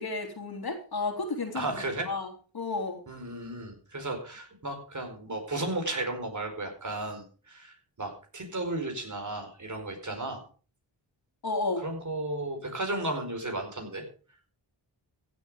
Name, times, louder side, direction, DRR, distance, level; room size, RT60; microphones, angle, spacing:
voice 1, 0.0-1.7 2.0-3.0 11.4-11.8, left 3 dB, 55° left, 4 dB, 3.4 m, -32 dB
voice 2, 1.5-2.1 3.1-10.4 11.8-14.0, right 2 dB, 40° right, 4 dB, 4.6 m, -34 dB
16.0 x 7.4 x 5.0 m, 0.38 s
cardioid pair, 70°, 44 cm